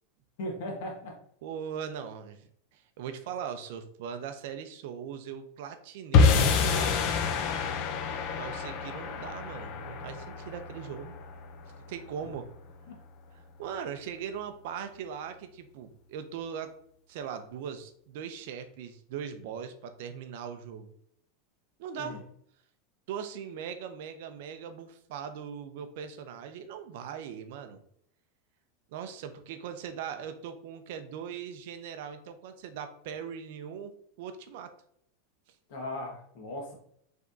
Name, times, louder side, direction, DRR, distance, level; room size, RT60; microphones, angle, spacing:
voice 1, 0.4-1.2 12.9-13.0 22.0-22.2 35.7-36.7, left 1 dB, 55° left, 0 dB, 1.4 m, -38 dB
voice 2, 1.4-7.1 8.4-11.2 11.9-12.5 13.3-16.7 17.1-20.9 21.8-22.2 23.1-27.8 28.9-33.9 34.2-34.7, right 8 dB, 55° right, 8 dB, 0.5 m, -40 dB
sound 1, 6.1-12.5, left 5 dB, 35° left, 0.4 m, -27 dB
4.9 x 3.5 x 2.6 m, 0.68 s
supercardioid pair, 175°, 0 cm